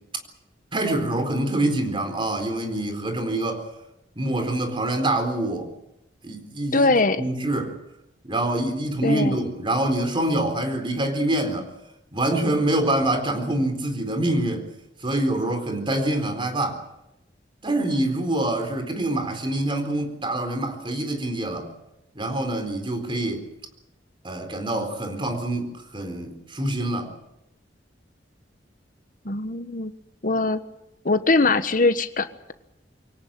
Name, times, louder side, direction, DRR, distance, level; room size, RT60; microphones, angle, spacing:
voice 1, 0.7-3.6 4.2-5.7 6.2-6.9 7.2-7.7 8.2-11.7 12.1-14.7 15.0-16.8 17.6-21.7 22.2-23.4 24.2-27.1, right 1 dB, 30° right, 6 dB, 4.1 m, -25 dB
voice 2, 6.7-7.2 9.0-9.4 29.2-29.9 30.2-30.6 31.0-32.5, left 3 dB, 50° left, 10 dB, 1.4 m, -21 dB
24.0 x 18.0 x 9.0 m, 0.87 s
head